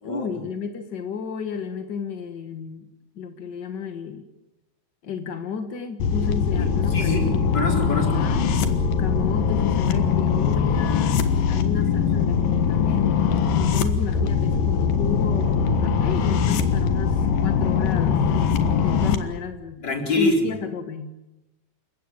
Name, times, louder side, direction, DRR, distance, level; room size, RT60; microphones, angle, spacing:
voice 1, 0.0-2.9 3.1-4.2 5.0-7.7 8.1-8.4 8.8-13.1 13.5-19.8 20.1-21.2, left 6 dB, 55° left, 7 dB, 1.2 m, -33 dB
sound 1, 6.0-19.2, left 6 dB, 70° left, 3.1 m, -21 dB
voice 2, 6.5-8.2 19.8-20.5, left 2 dB, 30° left, 2 dB, 4.7 m, -25 dB
28.5 x 16.0 x 8.9 m, 0.96 s
omnidirectional pair, 4.1 m